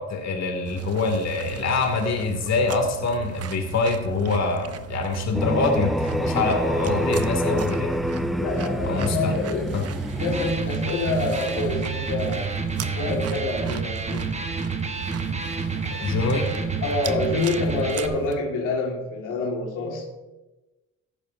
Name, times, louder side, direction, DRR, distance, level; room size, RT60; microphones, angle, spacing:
voice 1, 0.0-7.9 8.8-9.3 9.7-9.8 15.9-16.5, left 4 dB, 60° left, 3 dB, 2.3 m, -25 dB
sound 1, 0.7-18.4, right 11 dB, 55° right, 0.7 m, -36 dB
sound 2, 5.3-10.5, equal, ahead, 0.4 m, -27 dB
voice 2, 8.3-12.6 12.8-14.3 16.8-20.1, left 3 dB, 85° left, -1 dB, 1.8 m, -27 dB
Electric guitar, 10.1-18.1, right 4 dB, 20° right, 1.1 m, -29 dB
14.5 x 11.0 x 2.6 m, 1.1 s
cardioid pair, 90°, 30 cm